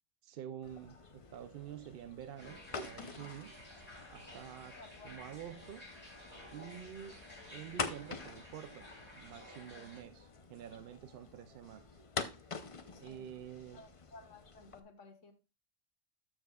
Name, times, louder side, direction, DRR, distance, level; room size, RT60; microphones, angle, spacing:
voice 1, 0.2-3.6 4.1-4.8 5.0-5.9 6.5-7.2 7.5-11.9 13.0-13.8, right 10 dB, 60° right, 0.6 m, -48 dB
sound 1, 0.6-14.8, left 4 dB, 35° left, 0.6 m, -47 dB
sound 2, 2.4-10.0, left 1 dB, 10° left, 5.3 m, -53 dB
voice 2, 4.8-5.2 12.9-13.3 13.7-15.3, left 3 dB, 80° left, 1.8 m, -56 dB
13.5 x 6.2 x 2.3 m
omnidirectional pair, 1.3 m